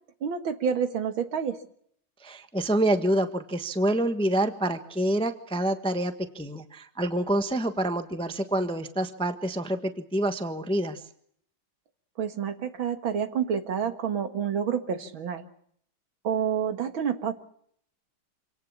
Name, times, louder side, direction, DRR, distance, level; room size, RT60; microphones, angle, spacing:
voice 1, 0.2-1.6 12.2-15.4 16.2-17.3, right 7 dB, 70° right, 8 dB, 2.5 m, -28 dB
voice 2, 2.2-11.0, right 1 dB, 5° left, 9 dB, 0.9 m, -27 dB
26.5 x 17.5 x 7.1 m, 0.67 s
omnidirectional pair, 2.3 m